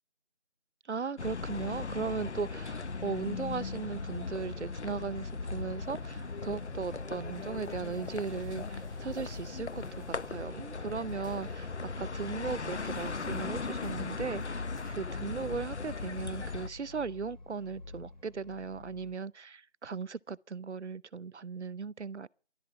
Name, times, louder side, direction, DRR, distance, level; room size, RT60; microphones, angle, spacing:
voice 1, 0.9-9.8 10.3-22.3, right 5 dB, 75° right, 0.7 m, -37 dB
sound 1, 1.2-16.7, left 4 dB, 75° left, 0.7 m, -39 dB
sound 2, 1.9-19.2, left 2 dB, 40° left, 2.7 m, -46 dB
sound 3, 5.8-16.4, equal, 15° left, 2.0 m, -60 dB
12.0 x 11.5 x 7.8 m
figure-of-eight pair, 180°, 35 cm